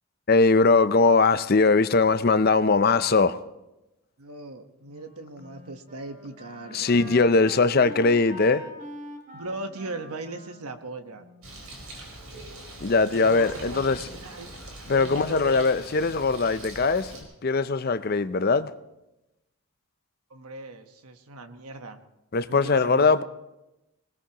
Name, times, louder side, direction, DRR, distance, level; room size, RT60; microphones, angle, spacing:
voice 1, 0.3-3.4 6.7-8.6 12.8-14.0 14.9-17.1 17.4-18.7 22.3-23.2, left 4 dB, 45° left, 12 dB, 0.5 m, -21 dB
voice 2, 4.2-7.1 9.3-11.2 13.1-14.6 14.9-15.7 20.3-22.0 22.5-23.2, right 3 dB, 90° right, 7 dB, 1.2 m, -39 dB
Wind instrument woodwind instrument, 4.9-12.0, left 1 dB, 35° right, 2.0 m, -45 dB
Bird, 11.4-17.2, right 1 dB, 75° right, 4.4 m, -42 dB
20.0 x 19.5 x 3.0 m, 0.95 s
head